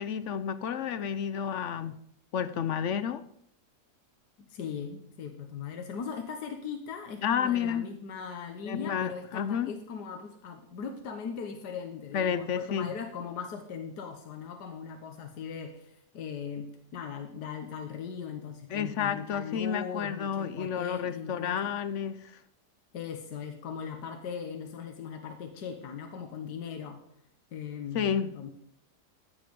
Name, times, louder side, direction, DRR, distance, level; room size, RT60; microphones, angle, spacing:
voice 1, 0.0-2.0 2.3-3.2 7.2-7.9 8.7-9.7 12.1-12.9 18.7-22.4 27.9-28.3, left 8 dB, 60° left, 0.8 m, -30 dB
voice 2, 4.5-21.7 22.9-27.0 27.5-28.5, left 6 dB, 80° left, 1.7 m, -39 dB
14.0 x 8.4 x 5.2 m
omnidirectional pair, 1.7 m